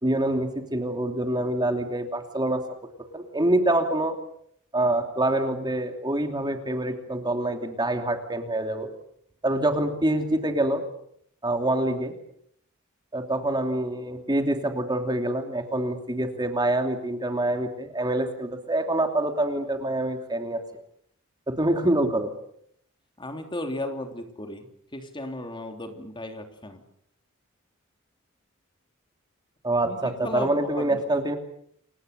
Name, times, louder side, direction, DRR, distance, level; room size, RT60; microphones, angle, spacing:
voice 1, 0.0-2.6 3.1-4.2 4.7-8.9 9.4-10.8 11.4-12.1 13.1-20.6 21.5-22.3 29.6-31.4, right 1 dB, 20° right, 5 dB, 2.8 m, -26 dB
voice 2, 23.2-26.8 29.8-31.0, left 1 dB, 25° left, 5 dB, 3.2 m, -35 dB
29.0 x 24.0 x 6.8 m, 0.69 s
head